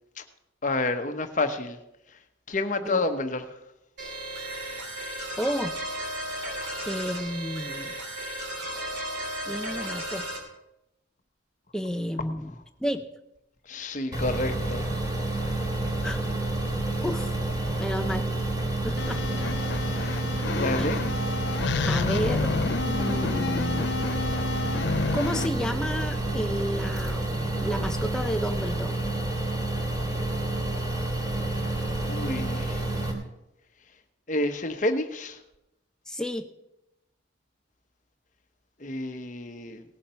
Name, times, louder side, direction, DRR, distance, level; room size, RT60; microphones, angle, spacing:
voice 1, 0.6-1.8 2.5-3.4 13.7-14.8 20.0-20.2 20.5-21.0 32.1-32.8 34.3-35.4 38.8-39.8, left 2 dB, 40° left, 8 dB, 1.0 m, -29 dB
sound 1, 4.0-10.4, right 1 dB, 60° right, 3.1 m, -34 dB
voice 2, 5.4-5.7 6.8-7.9 9.4-10.2 11.7-12.5 12.8-13.0 16.0-16.2 17.0-17.3 17.8-18.3 18.8-19.4 20.8-20.9 21.9-22.5 22.8-23.9 25.1-28.9 36.1-36.5, equal, 5° left, 7 dB, 0.6 m, -31 dB
sound 2, 14.1-33.1, right 2 dB, 20° right, 2.9 m, -29 dB
sound 3, 19.0-25.5, left 4 dB, 55° left, 0.4 m, -30 dB
18.0 x 7.2 x 5.7 m, 0.88 s
head